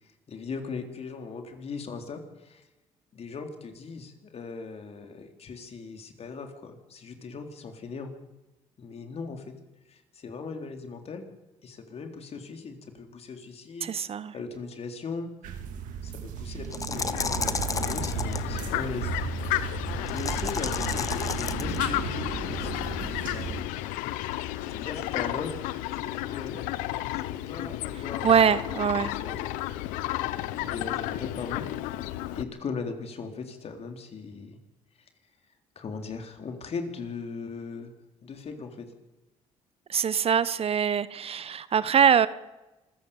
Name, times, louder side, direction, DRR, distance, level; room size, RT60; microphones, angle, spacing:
voice 1, 0.3-2.6 3.1-8.1 8.8-9.5 9.9-11.3 11.6-13.9 14.3-15.3 16.0-17.5 17.8-19.1 20.1-22.8 23.1-23.7 24.7-25.6 25.9-26.6 27.1-29.5 30.3-32.0 32.3-34.6 35.8-37.9 38.2-38.9, left 4 dB, 50° left, 5 dB, 3.7 m, -39 dB
voice 2, 13.8-14.4 28.2-29.1 39.9-42.3, right 8 dB, 50° right, 16 dB, 1.0 m, -23 dB
sound 1, 15.4-23.6, right 7 dB, 80° right, 2.3 m, -35 dB
sound 2, 16.6-18.4 20.1-21.8, left 4 dB, 25° left, 1.3 m, -32 dB
Fowl, 16.9-32.4, left 15 dB, 85° left, 0.8 m, -32 dB
26.0 x 14.5 x 7.2 m, 1.0 s
supercardioid pair, 70°, 13 cm